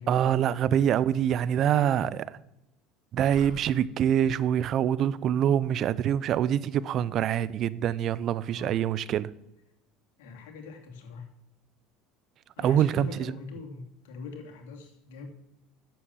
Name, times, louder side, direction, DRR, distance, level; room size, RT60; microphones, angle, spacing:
voice 1, 0.1-2.1 3.1-9.3 12.6-13.3, right 10 dB, 50° right, 0.6 m, -25 dB
voice 2, 1.6-2.1 8.5-8.8 10.2-11.3 12.6-15.3, left 4 dB, 85° left, 2.8 m, -42 dB
sound 1, 3.3-3.8, right 3 dB, 80° right, 3.9 m, -44 dB
10.0 x 7.8 x 7.2 m
supercardioid pair, 100°, 0 cm